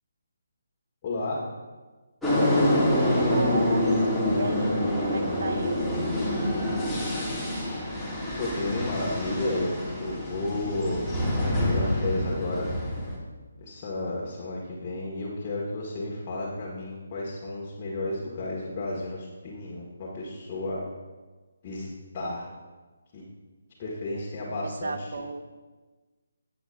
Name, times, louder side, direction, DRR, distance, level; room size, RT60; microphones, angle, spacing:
voice 1, 1.0-1.5 8.4-9.7 10.0-11.1 11.7-12.7 13.6-20.8 21.6-21.9 22.1-22.5 23.1-23.2 23.8-25.1, left 2 dB, 30° left, -6 dB, 2.0 m, -32 dB
sound 1, 2.2-13.2, left 1 dB, ahead, 2.4 m, -26 dB
voice 2, 3.2-5.9 24.1-24.2 24.6-25.4, right 3 dB, 55° right, 8 dB, 1.0 m, -34 dB
19.0 x 7.9 x 2.7 m, 1.3 s
figure-of-eight pair, 145°, 0 cm